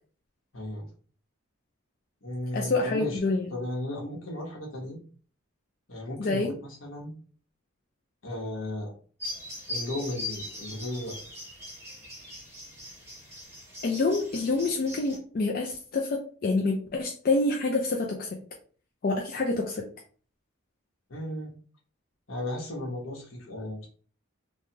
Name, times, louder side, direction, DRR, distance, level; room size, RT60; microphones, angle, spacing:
voice 1, 0.5-0.9 2.2-3.2 3.5-5.0 5.9-7.1 8.2-8.9 9.7-11.1 21.1-21.5 22.3-23.9, left 1 dB, 70° left, -2 dB, 1.1 m, -35 dB
voice 2, 2.5-3.5 6.2-6.5 13.8-18.4 19.0-19.8, left 3 dB, 45° left, 0 dB, 0.4 m, -27 dB
sound 1, 9.2-15.2, left 1 dB, 10° right, 0.8 m, -40 dB
3.2 x 2.1 x 2.8 m, 0.42 s
head